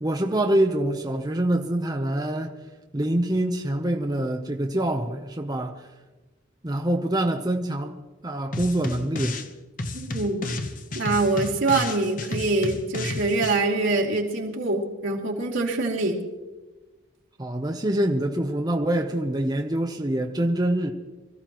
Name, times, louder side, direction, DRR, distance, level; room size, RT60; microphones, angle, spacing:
voice 1, 0.0-2.5 2.9-5.8 6.6-8.0 8.2-9.4 17.4-20.9, right 1 dB, 20° right, 0.7 m, -25 dB
sound 1, 8.5-9.5 9.8-13.6, left 2 dB, 40° left, 0.8 m, -32 dB
voice 2, 9.9-10.5 10.9-16.2, right 2 dB, 80° right, 2.6 m, -24 dB
24.5 x 15.0 x 3.0 m
head